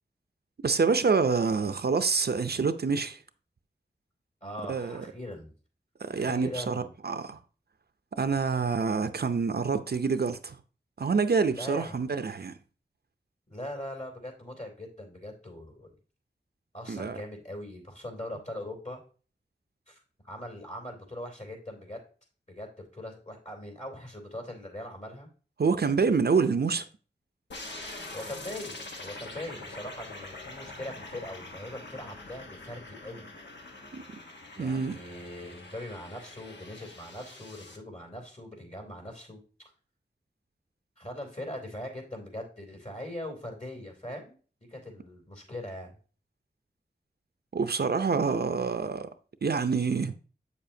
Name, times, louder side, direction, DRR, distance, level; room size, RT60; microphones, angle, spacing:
voice 1, 0.6-3.2 4.7-5.0 6.0-7.4 8.2-10.6 11.0-12.5 16.9-17.2 25.6-26.8 33.9-34.0 34.6-35.0 47.5-49.1 49.4-50.1, right 5 dB, 60° right, 0.6 m, -27 dB
voice 2, 4.4-5.5 6.2-6.9 11.5-12.5 13.5-15.9 16.7-19.0 19.9-22.0 22.5-25.3 28.1-33.3 34.5-39.4 41.0-44.3 44.7-46.0, left 1 dB, 40° left, 3.2 m, -41 dB
sound 1, 27.5-37.8, left 2 dB, 75° left, 1.2 m, -44 dB
8.2 x 7.0 x 2.7 m
wide cardioid pair, 75°, 18 cm